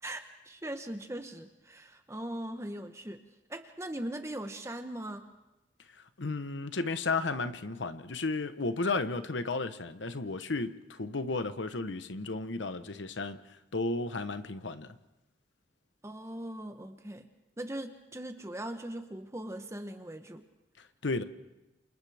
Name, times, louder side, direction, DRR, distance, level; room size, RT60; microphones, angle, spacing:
voice 1, 0.0-3.2 3.5-5.3 16.0-17.3 17.6-20.5, right 1 dB, 15° right, 0.9 m, -40 dB
voice 2, 6.2-13.4 13.7-14.9 21.0-21.2, left 3 dB, 80° left, 1.0 m, -33 dB
30.0 x 28.0 x 3.5 m
head